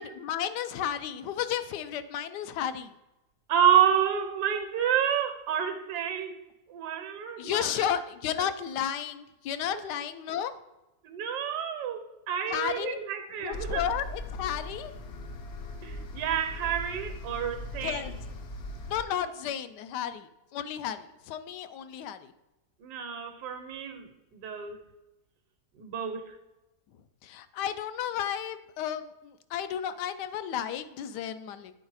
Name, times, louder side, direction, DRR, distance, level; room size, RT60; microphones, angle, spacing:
voice 1, 0.0-2.9 7.4-10.5 12.5-13.0 13.4-14.9 17.8-18.1 18.9-22.3 27.2-31.7, left 9 dB, 80° left, 11 dB, 1.2 m, -33 dB
voice 2, 3.5-6.4 6.7-7.7 11.0-13.8 15.8-18.1 22.8-24.8 25.8-26.3, right 9 dB, 75° right, 7 dB, 1.3 m, -29 dB
sound 1, 13.5-19.0, left 1 dB, 60° left, 0.7 m, -39 dB
9.1 x 4.0 x 4.7 m, 0.98 s
omnidirectional pair, 1.8 m